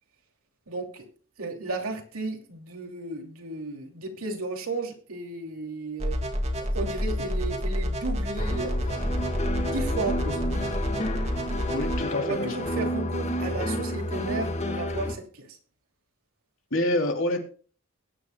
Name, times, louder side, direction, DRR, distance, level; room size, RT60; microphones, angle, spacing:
voice 1, 0.7-1.1 1.4-6.2 6.6-9.0 9.6-10.4 12.2-15.6, right 2 dB, 85° right, 3 dB, 2.7 m, -34 dB
sound 1, 6.0-12.0, equal, 30° right, 2.1 m, -29 dB
sound 2, 8.4-15.1, equal, 30° left, 1.4 m, -30 dB
voice 2, 11.7-12.6 16.7-17.4, left 1 dB, 65° left, 3 dB, 3.0 m, -27 dB
21.5 x 9.7 x 2.2 m, 0.40 s
head